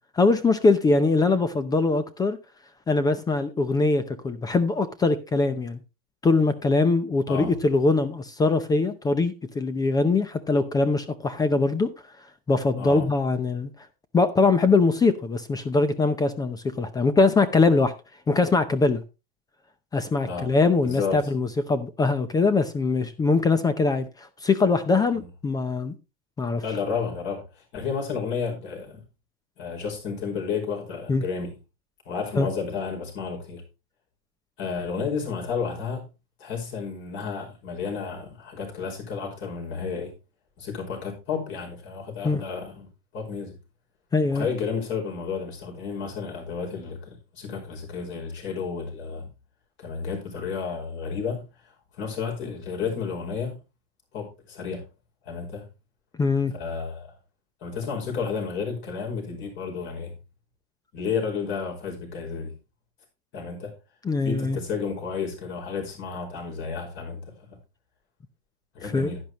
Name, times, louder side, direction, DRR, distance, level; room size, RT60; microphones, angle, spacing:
voice 1, 0.1-2.4 2.9-5.8 6.2-11.9 12.5-13.7 14.1-17.9 18.3-19.0 19.9-25.9 26.4-26.6 31.1-31.2 32.3-32.5 42.2-42.4 44.1-44.5 56.2-56.5 64.0-64.6 68.9-69.1, left 3 dB, 15° left, 0.6 m, -22 dB
voice 2, 20.8-21.2 25.1-25.3 26.6-29.0 29.6-31.5 32.1-33.6 34.6-36.1 36.4-40.1 40.6-42.9 43.1-43.6 44.3-49.3 49.8-51.5 52.0-53.6 54.1-54.8 55.2-55.7 56.5-57.1 57.6-60.1 60.9-62.5 63.3-63.7 64.2-67.6 68.7-69.2, left 5 dB, 40° left, 5.2 m, -31 dB
10.5 x 10.5 x 3.0 m
supercardioid pair, 150°, 29 cm